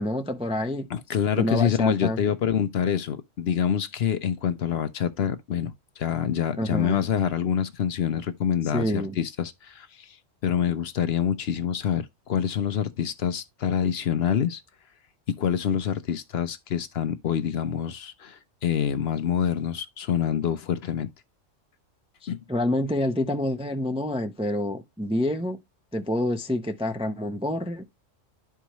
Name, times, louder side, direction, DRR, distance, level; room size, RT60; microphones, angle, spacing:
voice 1, 0.0-0.9 1.4-2.2 6.6-7.1 8.7-9.2 22.2-25.6 25.9-27.9, left 1 dB, 10° right, 0.4 m, -27 dB
voice 2, 0.9-10.2 10.4-14.6 15.3-21.1 22.3-22.4, left 8 dB, 60° left, 0.8 m, -26 dB
11.5 x 4.6 x 3.0 m
omnidirectional pair, 1.3 m